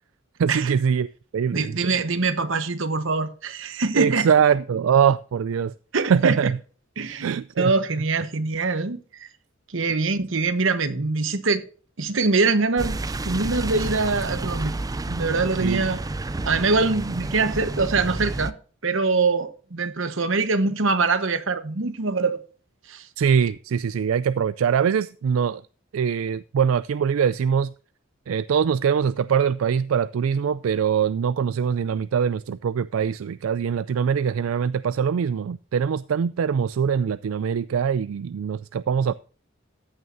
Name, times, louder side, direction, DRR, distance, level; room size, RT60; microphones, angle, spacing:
voice 1, 0.4-1.1 1.3-1.9 3.9-5.7 6.1-6.6 7.2-7.7 15.6-15.8 23.2-25.6 25.9-27.7 28.3-39.1, right 7 dB, 85° right, 0.4 m, -23 dB
voice 2, 1.5-4.3 5.9-6.4 7.0-9.3 9.7-11.6 12.0-13.0 13.3-14.7 15.1-16.0 16.4-18.5 18.8-22.4 22.9-23.1, right 3 dB, 70° right, 1.1 m, -23 dB
sound 1, 12.8-18.5, right 2 dB, 20° right, 0.4 m, -30 dB
14.0 x 9.4 x 2.6 m
head